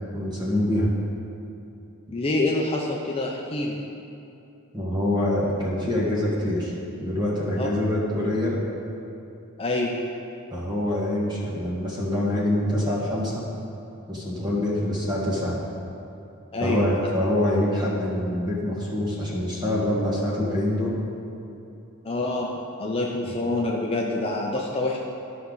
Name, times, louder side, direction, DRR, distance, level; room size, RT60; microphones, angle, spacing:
voice 1, 0.1-0.9 4.7-6.7 7.0-8.6 10.5-13.4 14.1-15.6 16.6-21.0 23.2-23.4, left 1 dB, 20° right, -5 dB, 1.8 m, -25 dB
voice 2, 2.1-3.8 7.6-7.7 9.6-10.0 16.5-16.8 22.0-22.5 22.8-25.0, left 2 dB, 25° left, -1 dB, 0.6 m, -26 dB
12.5 x 5.6 x 4.0 m, 2.8 s
head